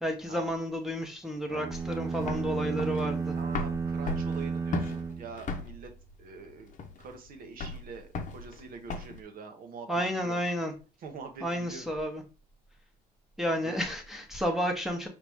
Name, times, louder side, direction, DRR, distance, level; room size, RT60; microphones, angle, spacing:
voice 1, 0.0-3.3 9.9-10.7 11.4-12.2 13.4-15.1, equal, ahead, 1 dB, 0.9 m, -31 dB
sound 1, 1.5-5.9, right 5 dB, 20° right, 0.5 m, -33 dB
sound 2, 1.7-9.2, left 4 dB, 45° left, 0.8 m, -37 dB
voice 2, 3.4-5.9 6.2-10.4 11.0-11.9 13.6-13.8, right 5 dB, 60° right, 5 dB, 0.9 m, -45 dB
4.9 x 3.1 x 3.4 m, 0.33 s
cardioid pair, 110°, 17 cm